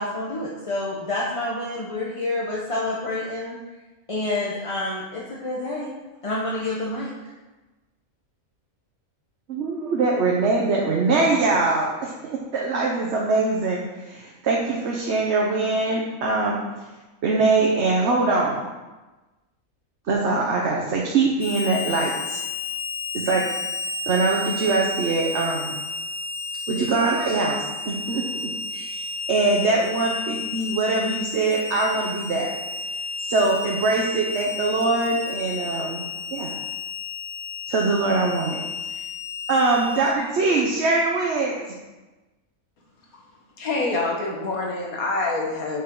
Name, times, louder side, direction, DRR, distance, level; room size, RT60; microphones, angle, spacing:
voice 1, 0.0-3.6 4.1-5.9 6.2-7.1, left 2 dB, 25° left, -5 dB, 0.9 m, -28 dB
voice 2, 9.5-16.6 17.2-18.6 20.1-22.4 23.1-23.4 24.1-25.8 26.7-28.2 28.7-29.0 29.3-32.5 33.2-36.0 36.3-36.5 37.7-38.6 39.5-41.5, right 3 dB, 55° right, -2 dB, 1.1 m, -23 dB
Harmonica, 21.4-40.1, left 3 dB, 45° left, 0.5 m, -32 dB
voice 3, 43.6-45.8, left 3 dB, 80° left, -1 dB, 1.8 m, -26 dB
8.6 x 5.7 x 3.8 m, 1.2 s
omnidirectional pair, 1.5 m